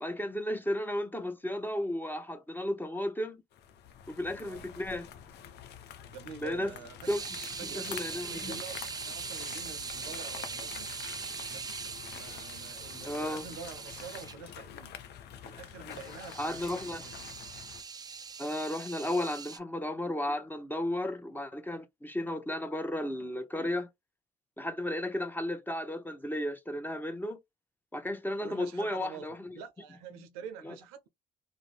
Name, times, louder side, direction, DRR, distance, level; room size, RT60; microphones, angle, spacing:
voice 1, 0.0-3.4 4.1-5.1 6.4-6.7 7.1-7.2 7.6-8.6 13.1-13.4 16.4-17.0 18.4-23.9 24.6-27.4 27.9-29.5 30.6-30.7, left 1 dB, 10° left, 0.7 m, -34 dB
sound 1, 3.5-17.8, left 9 dB, 65° left, 0.6 m, -47 dB
voice 2, 6.1-7.2 7.6-10.9 11.5-11.8 12.1-14.9 15.3-17.1 19.0-19.1 28.4-29.3 29.5-31.1, right 7 dB, 85° right, 0.5 m, -47 dB
sound 2, 7.0-14.4 15.9-19.6, right 5 dB, 20° right, 0.4 m, -41 dB
2.5 x 2.0 x 3.2 m
hypercardioid pair, 55°, 19 cm